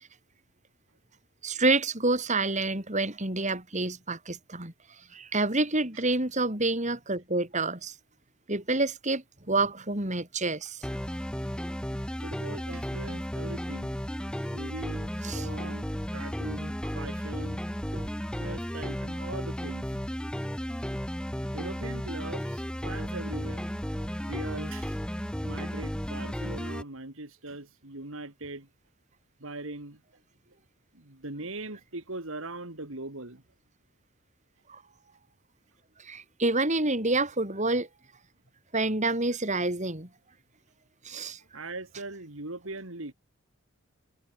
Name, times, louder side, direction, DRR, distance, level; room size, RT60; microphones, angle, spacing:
voice 1, 1.4-4.7 5.1-7.9 8.5-10.8 15.2-15.5 17.9-18.1 34.7-34.8 36.0-37.9 38.7-40.1 41.0-41.4, right 2 dB, 30° right, 3.9 m, -28 dB
sound 1, 10.8-26.8, equal, 5° left, 1.4 m, -34 dB
voice 2, 12.2-13.9 14.5-15.9 16.1-17.7 18.4-19.9 21.5-23.7 24.2-25.0 25.4-28.7 29.4-30.0 30.9-33.4 41.5-43.1, right 2 dB, 60° right, 2.8 m, -40 dB
head